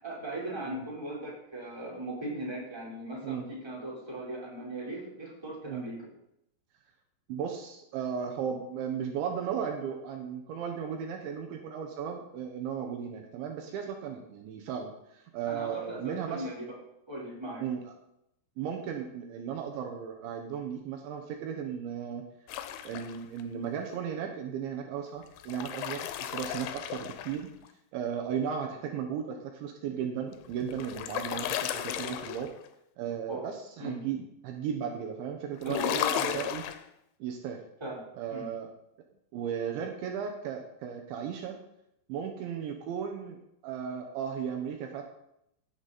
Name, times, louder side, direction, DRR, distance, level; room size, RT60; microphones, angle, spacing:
voice 1, 0.0-6.1 15.5-16.8 17.1-17.6 33.3-33.5 33.8-34.0 35.6-36.5 37.8-38.5, right 1 dB, 5° right, -4 dB, 3.4 m, -38 dB
voice 2, 7.3-16.5 17.6-17.8 18.6-22.2 22.8-27.5 27.9-32.5 33.0-35.8 36.1-36.6 37.2-37.6 38.2-38.7 39.3-41.6 42.1-43.4 43.6-45.0, right 8 dB, 75° right, 3 dB, 3.4 m, -35 dB
sound 1, 22.5-23.4 25.2-27.7 30.3-32.7 35.6-36.8, left 11 dB, 85° left, 3.2 m, -34 dB
17.0 x 8.1 x 4.2 m, 0.79 s
omnidirectional pair, 5.5 m